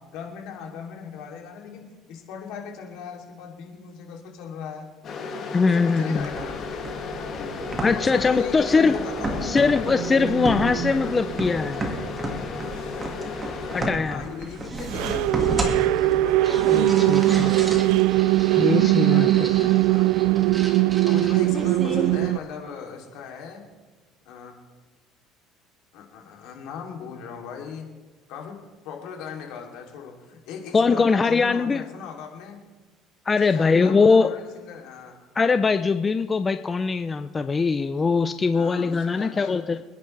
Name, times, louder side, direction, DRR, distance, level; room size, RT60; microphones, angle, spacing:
voice 1, 0.1-4.9 5.6-6.9 7.2-9.7 14.0-17.0 18.4-20.1 21.0-23.7 24.2-24.7 25.9-27.9 28.3-28.6 28.8-32.6 33.3-35.2 38.5-39.6, left 6 dB, 70° left, 1 dB, 2.9 m, -38 dB
sound 1, 5.0-13.9, left 4 dB, 45° left, 2.4 m, -34 dB
voice 2, 5.5-6.3 7.8-9.0 9.4-11.8 13.7-14.2 16.5-17.5 18.6-19.5 30.7-31.8 33.3-34.3 35.4-39.8, left 4 dB, 20° left, 10 dB, 0.4 m, -21 dB
sound 2, 6.2-22.2, right 1 dB, 15° right, 2.0 m, -33 dB
sound 3, 9.9-11.7 14.8-22.4, right 16 dB, 75° right, 0.3 m, -21 dB
27.0 x 10.5 x 3.3 m, 1.3 s
cardioid pair, 135°, 0 cm